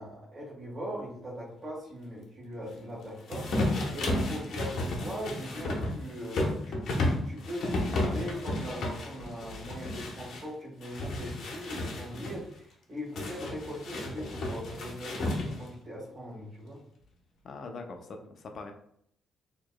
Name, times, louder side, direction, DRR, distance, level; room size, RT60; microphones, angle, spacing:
voice 1, 0.0-3.5 3.9-16.8, equal, 30° right, -9 dB, 1.4 m, -40 dB
sound 1, 3.3-10.4 10.8-12.4 13.2-15.7, left 1 dB, 65° left, 0.9 m, -32 dB
voice 2, 17.4-18.7, left 3 dB, 45° left, 5 dB, 0.5 m, -42 dB
4.6 x 2.9 x 2.2 m, 0.67 s
cardioid pair, 155°, 0 cm